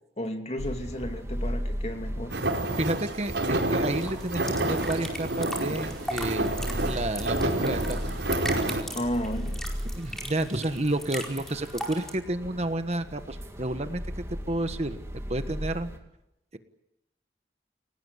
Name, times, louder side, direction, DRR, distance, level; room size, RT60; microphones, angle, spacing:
voice 1, 0.2-2.4 8.9-9.6, equal, 40° left, 5 dB, 2.6 m, -33 dB
sound 1, 0.6-16.0, equal, 15° right, 2.5 m, -37 dB
sound 2, 2.3-8.8, right 1 dB, 90° right, 4.4 m, -29 dB
voice 2, 2.8-6.5 6.8-8.2 9.9-15.0 15.3-15.9, right 1 dB, 40° right, 9 dB, 1.4 m, -30 dB
sound 3, 3.2-12.1, equal, 5° left, 4.6 m, -39 dB
30.0 x 18.0 x 8.2 m, 0.89 s
head